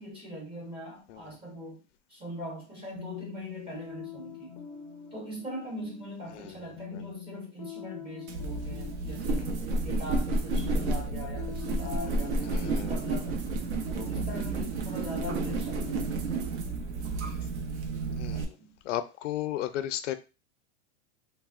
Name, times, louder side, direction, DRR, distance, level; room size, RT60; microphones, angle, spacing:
voice 1, 0.0-1.8 2.1-4.6 5.1-13.5 13.9-16.2 18.3-18.7, equal, 15° right, 0.7 m, -41 dB
sound 1, 3.0-18.5, left 9 dB, 25° left, 0.4 m, -45 dB
sound 2, 8.3-18.4, right 3 dB, 70° right, 0.7 m, -31 dB
voice 2, 12.4-13.0 18.1-18.6 18.8-20.1, left 12 dB, 85° left, 0.5 m, -35 dB
3.3 x 2.1 x 2.4 m
supercardioid pair, 155°, 35 cm